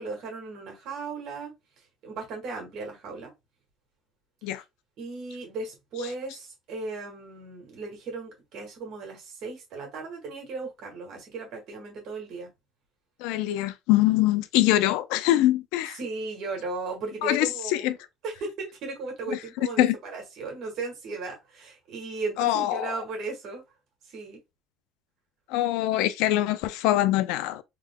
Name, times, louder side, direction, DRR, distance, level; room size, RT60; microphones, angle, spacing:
voice 1, 0.0-1.5 2.0-3.3 5.0-12.5 16.0-17.9 18.2-23.6 24.1-24.4, right 3 dB, 50° right, 1.6 m, -36 dB
voice 2, 13.2-16.0 17.2-18.0 19.3-20.0 22.4-22.9 25.5-27.6, left 15 dB, 85° left, 0.3 m, -24 dB
3.6 x 2.1 x 3.6 m
cardioid pair, 160°, 0 cm